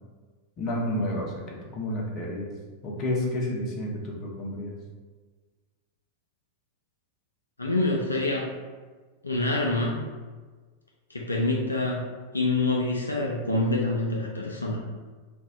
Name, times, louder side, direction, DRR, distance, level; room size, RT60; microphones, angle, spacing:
voice 1, 0.6-1.3 1.7-2.5 2.8-4.7, left 1 dB, 35° left, -2 dB, 0.7 m, -30 dB
voice 2, 7.6-8.5 9.2-10.0 11.1-12.1 12.3-14.8, left 2 dB, 80° left, -2 dB, 0.3 m, -26 dB
2.4 x 2.1 x 3.5 m, 1.4 s
figure-of-eight pair, 90°, 0 cm